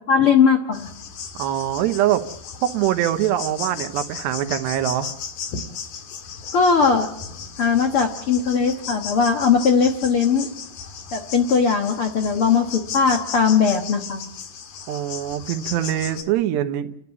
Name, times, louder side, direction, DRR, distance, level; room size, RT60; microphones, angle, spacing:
voice 1, 0.1-0.9 6.5-7.1 7.6-10.5 11.1-14.2, left 6 dB, 80° left, 4 dB, 1.2 m, -19 dB
sound 1, 0.7-16.2, left 6 dB, 60° left, 3.2 m, -36 dB
voice 2, 1.3-2.2 2.6-5.1 14.9-16.9, right 12 dB, 90° right, 9 dB, 3.2 m, -23 dB
30.0 x 12.5 x 8.3 m, 0.78 s
omnidirectional pair, 4.8 m